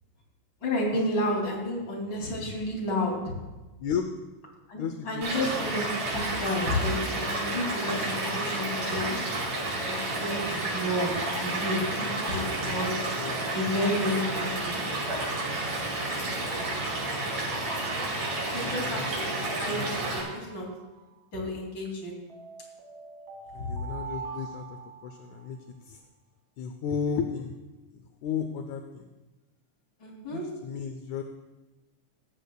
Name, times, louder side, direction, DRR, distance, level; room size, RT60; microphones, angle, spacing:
voice 1, 0.6-3.2 4.7-9.2 9.9-11.1 11.4-12.9 13.5-14.8 18.5-20.7 21.3-22.1 30.0-30.4, left 1 dB, 35° left, -1 dB, 3.2 m, -31 dB
voice 2, 4.7-5.3 11.8-13.4 16.7-16.8 18.6-19.1 23.5-26.0 26.6-27.5 28.2-29.1 30.3-31.2, left 7 dB, 75° left, 6 dB, 1.8 m, -34 dB
Stream / Liquid, 5.2-20.2, right 2 dB, 80° right, 5.9 m, -31 dB
sound 1, 20.1-21.2 22.3-25.5, right 5 dB, 35° right, 1.6 m, -43 dB
16.5 x 15.0 x 2.3 m, 1.1 s
omnidirectional pair, 3.8 m